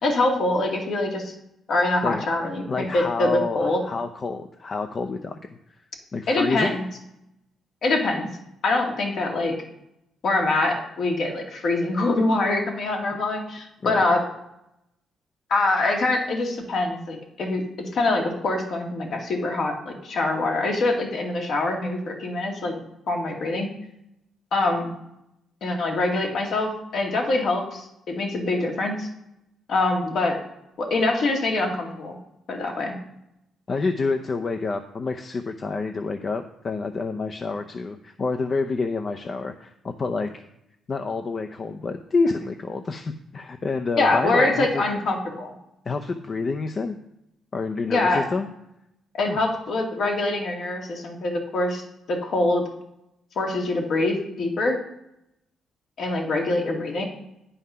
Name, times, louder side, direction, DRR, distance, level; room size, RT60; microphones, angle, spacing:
voice 1, 0.0-1.3 1.7-3.8 6.3-6.8 7.8-8.3 8.6-9.5 10.2-14.2 15.5-17.6 17.9-22.8 23.1-23.7 24.5-24.9 25.6-29.1 29.7-30.4 30.8-32.2 32.5-33.0 44.0-45.5 47.9-48.2 49.2-51.8 52.1-52.6 53.4-54.8 56.0-57.0, left 2 dB, 60° left, 1 dB, 2.3 m, -24 dB
voice 2, 2.0-5.4 6.1-6.8 13.8-14.0 33.7-40.4 40.9-44.8 45.9-47.0 47.5-48.5 49.3-49.4, left 4 dB, 40° left, 6 dB, 0.6 m, -28 dB
9.6 x 5.6 x 5.6 m, 0.83 s
cardioid pair, 90°, 0 cm